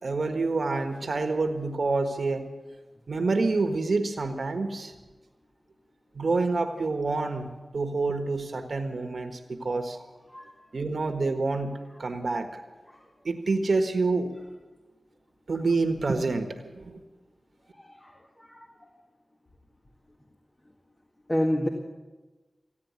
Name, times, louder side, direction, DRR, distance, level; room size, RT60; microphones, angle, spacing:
voice 1, 0.0-2.5 3.1-4.9 6.1-10.0 10.7-12.5 13.2-14.3 15.5-16.5 16.7-17.0, right 3 dB, 70° right, 6 dB, 1.5 m, -27 dB
voice 2, 17.8-18.7 21.3-21.7, equal, 30° left, 2 dB, 2.0 m, -29 dB
16.0 x 9.5 x 9.5 m, 1.2 s
cardioid pair, 45°, 0 cm